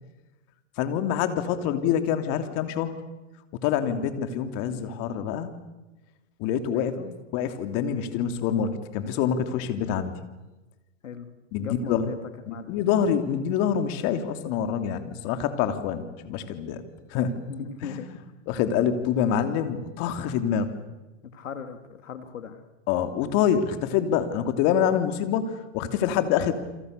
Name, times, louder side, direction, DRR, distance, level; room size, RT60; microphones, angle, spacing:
voice 1, 0.8-3.0 3.6-5.6 6.4-7.0 7.3-10.2 11.5-12.1 12.5-16.8 17.1-17.4 17.9-18.1 18.5-20.7 22.9-26.5, left 8 dB, 40° left, 8 dB, 3.1 m, -26 dB
voice 2, 6.7-7.2 11.0-11.3 11.6-12.9 17.5-18.1 21.2-22.6, left 6 dB, 90° left, 8 dB, 3.2 m, -38 dB
29.0 x 26.0 x 6.8 m, 1.1 s
hypercardioid pair, 135°, 38 cm